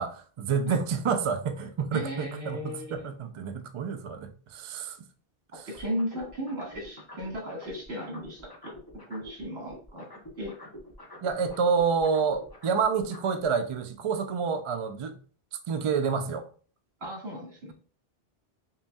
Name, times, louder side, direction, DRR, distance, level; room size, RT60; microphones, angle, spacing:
voice 1, 0.0-5.0 11.2-15.2 15.7-16.4, right 6 dB, 55° right, 0.3 m, -28 dB
voice 2, 1.9-3.1 5.5-8.7 9.1-10.1 10.4-10.5 17.0-17.7, equal, 75° right, 1.9 m, -36 dB
sound 1, 5.7-9.4 9.7-13.4, left 1 dB, 25° left, 0.8 m, -47 dB
5.6 x 2.7 x 2.2 m
omnidirectional pair, 1.1 m